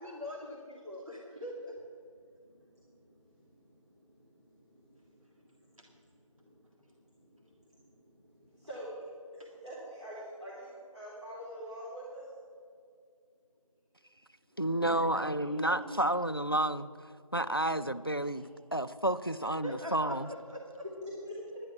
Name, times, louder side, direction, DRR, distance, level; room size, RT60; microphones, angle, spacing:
voice 1, 0.0-1.7 19.6-20.8, equal, 70° right, 0 dB, 1.9 m, -42 dB
voice 2, 2.4-6.0 6.3-8.9 9.3-12.3 14.8-15.1 15.4-16.0 18.3-18.5 21.0-21.6, equal, 50° right, -8 dB, 3.5 m, -47 dB
voice 3, 14.6-16.9 17.3-20.3, right 1 dB, 40° left, 10 dB, 0.4 m, -30 dB
11.0 x 10.5 x 6.0 m, 2.3 s
figure-of-eight pair, 180°, 18 cm